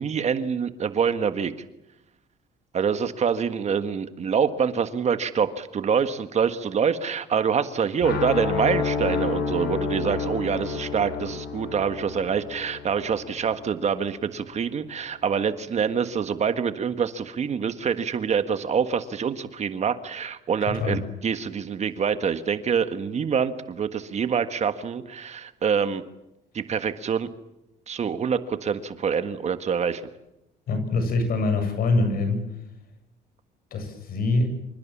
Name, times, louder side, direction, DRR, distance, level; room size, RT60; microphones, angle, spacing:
voice 1, 0.0-1.5 2.7-26.0 26.5-27.3 27.9-30.0, right 7 dB, 40° right, 10 dB, 1.7 m, -26 dB
sound 1, 8.0-13.9, left 5 dB, 85° left, 6.4 m, -29 dB
voice 2, 20.7-21.0 30.7-32.4 33.7-34.6, left 3 dB, 60° left, 8 dB, 7.7 m, -24 dB
27.0 x 26.0 x 7.4 m, 0.88 s
cardioid pair, 110°, 17 cm